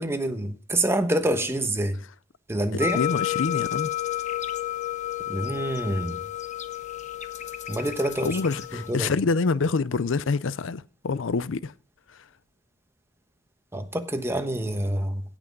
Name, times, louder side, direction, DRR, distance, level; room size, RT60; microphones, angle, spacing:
voice 1, 0.0-2.0 2.5-3.0 5.3-6.2 7.7-8.4 8.9-9.1 13.7-15.2, right 1 dB, 15° right, 1.1 m, -26 dB
sound 1, 2.8-8.9, left 13 dB, 35° left, 1.0 m, -31 dB
voice 2, 2.9-3.9 8.2-11.7 12.1-12.2, left 4 dB, 70° left, 0.5 m, -26 dB
16.5 x 6.2 x 5.3 m
head